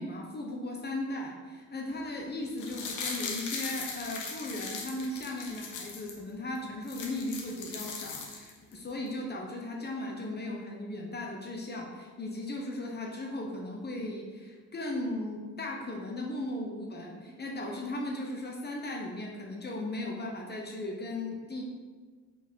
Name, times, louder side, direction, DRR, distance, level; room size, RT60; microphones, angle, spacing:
voice 1, 0.0-21.6, left 1 dB, 35° left, 0 dB, 1.0 m, -37 dB
sound 1, 2.5-6.2 6.6-6.7 6.8-8.7 9.1-9.2, left 4 dB, 80° left, 1.2 m, -39 dB
5.1 x 4.2 x 4.6 m, 1.4 s
cardioid pair, 90°, 30 cm